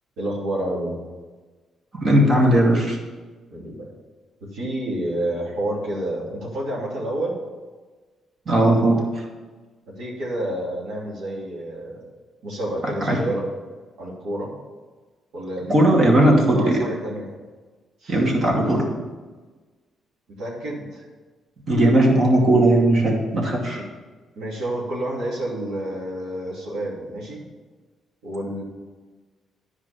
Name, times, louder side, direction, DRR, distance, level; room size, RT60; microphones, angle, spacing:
voice 1, 0.2-1.0 3.5-3.9 4.5-7.4 10.0-12.0 12.4-13.4 14.0-14.5 15.3-17.3 18.0-18.2 20.4-21.0 23.7-23.8 24.4-27.4 28.2-28.6, right 1 dB, 85° right, -5 dB, 2.9 m, -29 dB
voice 2, 1.9-3.0 8.5-9.0 13.1-13.2 15.7-16.8 18.1-18.9 21.7-23.8, right 1 dB, 45° right, -1 dB, 2.4 m, -17 dB
10.5 x 5.0 x 6.9 m, 1.3 s
cardioid pair, 90°, 0 cm